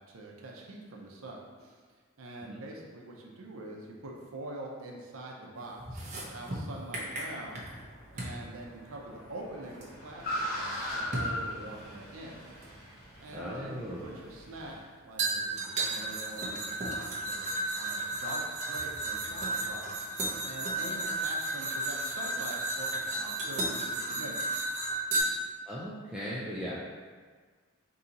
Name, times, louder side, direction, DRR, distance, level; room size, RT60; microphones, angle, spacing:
voice 1, 0.0-1.8 2.2-7.6 8.1-12.8 13.2-20.1 20.4-24.6, right 2 dB, 80° right, -1 dB, 0.7 m, -45 dB
sound 1, 5.8-7.8 8.2-8.4 9.8-9.9 11.1-11.4 12.6-12.7 15.2-25.2, right 2 dB, 35° right, 0.7 m, -33 dB
Car, 7.4-14.8, left 1 dB, 40° left, 1.3 m, -40 dB
voice 2, 13.3-14.2 25.7-26.8, equal, 5° right, -8 dB, 0.3 m, -38 dB
3.8 x 2.8 x 4.0 m, 1.5 s
head